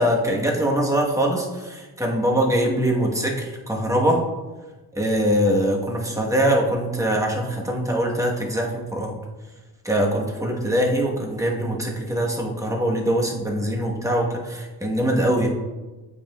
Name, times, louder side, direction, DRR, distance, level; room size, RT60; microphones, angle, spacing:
voice 1, 0.0-4.2 4.9-9.2 9.8-15.5, equal, 10° right, -1 dB, 1.2 m, -23 dB
8.5 x 5.0 x 2.3 m, 1.2 s
cardioid pair, 70°, 40 cm